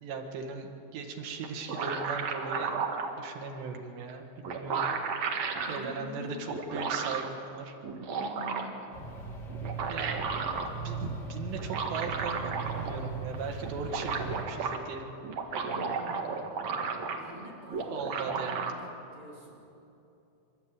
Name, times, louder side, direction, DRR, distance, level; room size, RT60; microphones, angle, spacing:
voice 1, 0.0-2.8 3.2-4.9 5.7-7.8 9.9-10.3 10.8-15.1 17.9-18.7, right 4 dB, 85° right, 3 dB, 4.0 m, -38 dB
sound 1, 1.4-3.1 4.1-4.2 4.4-5.8 6.5-7.3 7.8-8.9 9.5-10.7 11.6-13.0 13.3-13.4 13.6-14.8 15.2-17.4 17.7-18.7, right 5 dB, 55° right, 2.2 m, -33 dB
voice 2, 5.6-6.4 8.1-8.7 15.7-16.9 17.1-18.9 19.1-19.7, equal, 30° right, -4 dB, 4.7 m, -46 dB
sound 2, 8.9-14.4, right 4 dB, 30° left, 2.7 m, -39 dB
29.0 x 12.5 x 9.0 m, 2.8 s
omnidirectional pair, 4.8 m